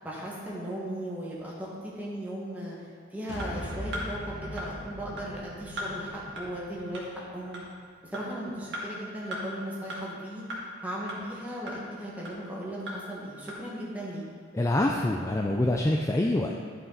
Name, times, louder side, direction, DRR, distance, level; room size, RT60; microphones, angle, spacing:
voice 1, 0.0-2.8 3.1-7.6 8.1-10.4 10.8-14.2, right 1 dB, 10° right, -6 dB, 1.6 m, -37 dB
sound 1, 3.3-7.7, left 1 dB, 60° left, 1.1 m, -41 dB
sound 2, 3.4-3.5 3.9-4.1 4.6-4.7 5.2-5.3 5.8-5.9 6.4-6.5 6.9-7.0 7.5-7.6 8.1-8.2 8.7-8.8 9.3-9.4 9.9-10.0 10.5-10.6 11.1-11.2 11.7-11.8 12.2-12.3 12.9-13.0 13.5-13.6, equal, 60° right, 1.7 m, -36 dB
voice 2, 14.5-16.6, left 1 dB, 15° left, 1 dB, 0.3 m, -25 dB
11.5 x 5.8 x 4.0 m, 2.1 s
head